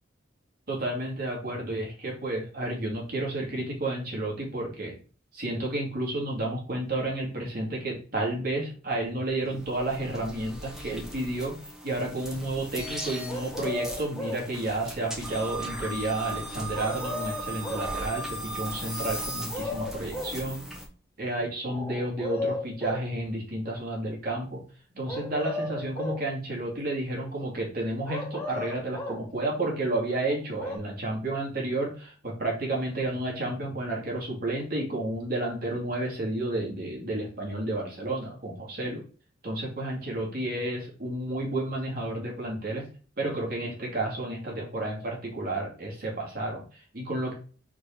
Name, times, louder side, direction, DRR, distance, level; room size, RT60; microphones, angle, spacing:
voice 1, 0.7-4.9 5.3-11.6 11.8-20.7 21.2-24.6 24.9-39.0 39.4-42.9 43.2-47.3, right 2 dB, 55° right, -2 dB, 2.5 m, -31 dB
sound 1, 9.2-20.9, right 1 dB, 5° right, 1.5 m, -38 dB
sound 2, 13.3-14.5 16.7-17.9 19.2-20.4 21.7-23.1 25.1-26.3 28.1-29.3 30.3-30.8, left 2 dB, 15° left, 1.3 m, -35 dB
4.8 x 4.4 x 4.4 m, 0.39 s
head